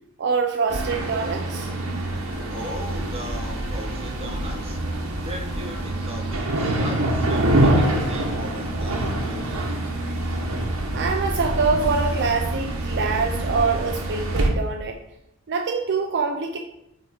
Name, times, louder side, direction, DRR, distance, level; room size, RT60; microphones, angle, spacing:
voice 1, 0.2-1.7 10.1-10.3 10.9-15.0 15.5-16.6, right 4 dB, 55° right, 3 dB, 0.5 m, -25 dB
sound 1, 0.7-14.5, right 1 dB, 80° right, 1.2 m, -25 dB
voice 2, 2.5-4.8 5.2-9.7, equal, 30° right, 1 dB, 1.1 m, -38 dB
8.6 x 3.6 x 3.7 m, 0.83 s
head